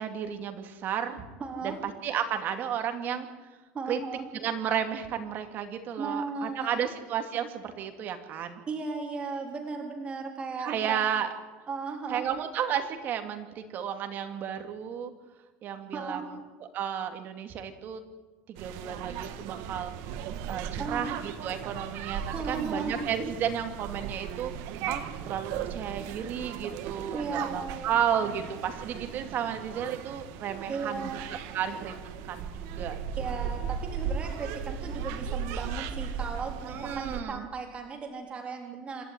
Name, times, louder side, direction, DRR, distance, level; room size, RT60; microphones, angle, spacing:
voice 1, 0.0-1.2 1.6-3.3 3.9-4.0 4.3-8.6 10.6-11.3 12.1-15.1 15.6-18.0 18.5-24.5 24.9-31.9 32.3-33.0 36.6-37.5, right 9 dB, 40° right, 6 dB, 2.6 m, -33 dB
voice 2, 1.4-1.8 3.7-4.3 6.0-6.8 8.7-11.1 11.7-12.3 15.9-16.3 20.8-21.0 22.3-23.0 27.1-27.9 30.7-31.3 33.2-39.0, right 4 dB, 20° right, 2 dB, 3.8 m, -36 dB
sound 1, 18.6-37.2, right 7 dB, 60° right, 1.9 m, -37 dB
27.0 x 12.0 x 9.7 m, 1.2 s
cardioid pair, 155°, 5 cm